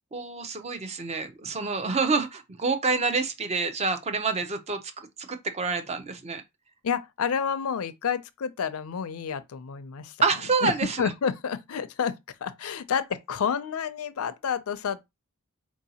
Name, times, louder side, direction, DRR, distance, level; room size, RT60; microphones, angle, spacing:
voice 1, 0.1-6.4 10.2-11.0, right 4 dB, 30° right, 0.5 m, -27 dB
voice 2, 6.8-10.2 10.6-10.7 11.0-15.0, left 7 dB, 75° left, 0.4 m, -29 dB
4.5 x 2.7 x 2.8 m
head